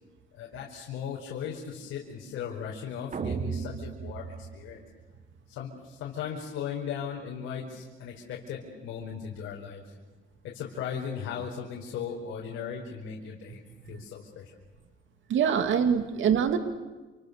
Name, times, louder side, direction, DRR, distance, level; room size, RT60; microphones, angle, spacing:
voice 1, 0.3-4.8 5.5-9.9 10.4-13.6 13.9-14.5, left 7 dB, 90° left, -2 dB, 4.9 m, -37 dB
sound 1, 3.1-5.4, right 5 dB, 40° right, 1.5 m, -36 dB
voice 2, 15.3-16.6, right 7 dB, 75° right, 7 dB, 2.5 m, -24 dB
29.5 x 28.5 x 6.8 m, 1.2 s
cardioid pair, 90°, 20 cm